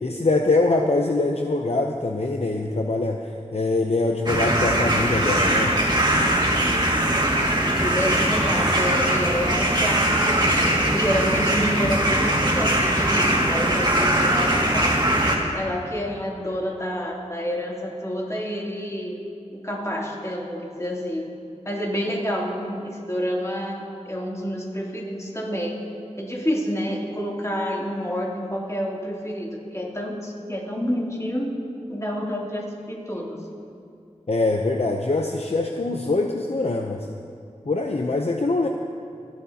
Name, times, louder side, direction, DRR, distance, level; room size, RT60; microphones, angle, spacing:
voice 1, 0.0-5.7 34.3-37.1 37.7-38.7, left 2 dB, 55° left, 2 dB, 0.7 m, -23 dB
sound 1, 4.3-15.4, right 1 dB, 35° right, 2.1 m, -21 dB
voice 2, 7.4-15.1 15.5-19.2 19.5-21.3 21.6-25.8 26.2-31.5 31.9-33.4, equal, 25° left, -3 dB, 2.9 m, -28 dB
27.5 x 11.5 x 2.9 m, 2.6 s
wide cardioid pair, 55°, 13 cm